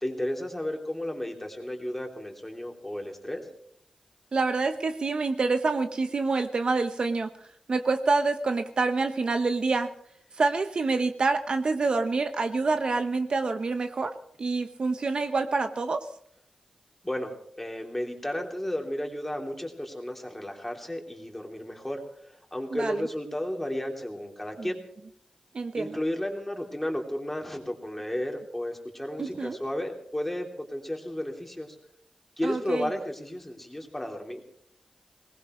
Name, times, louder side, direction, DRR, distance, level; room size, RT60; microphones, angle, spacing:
voice 1, 0.0-3.4 17.0-24.8 25.7-31.8 32.4-34.4, left 1 dB, 10° left, 2 dB, 3.2 m, -33 dB
voice 2, 4.3-7.3 7.7-9.9 10.4-14.1 14.4-16.1 22.7-23.0 24.6-24.7 25.5-26.0 29.2-29.6 32.4-32.9, right 3 dB, 50° right, 7 dB, 1.0 m, -27 dB
22.5 x 19.5 x 3.2 m, 0.69 s
wide cardioid pair, 140°, 2 cm